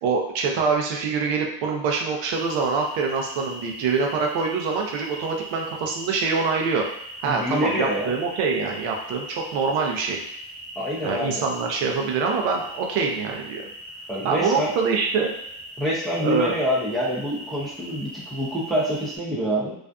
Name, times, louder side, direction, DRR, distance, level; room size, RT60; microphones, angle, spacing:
voice 1, 0.0-6.8 7.2-10.2 11.0-13.6 14.2-15.3 16.2-16.6, right 5 dB, 85° right, 1 dB, 0.7 m, -25 dB
sound 1, 2.3-19.2, right 1 dB, 15° right, 0.9 m, -40 dB
voice 2, 7.2-8.1 10.8-11.4 14.1-14.7 15.8-19.7, equal, ahead, -5 dB, 0.3 m, -26 dB
2.5 x 2.4 x 2.2 m, 0.77 s
cardioid pair, 140°, 46 cm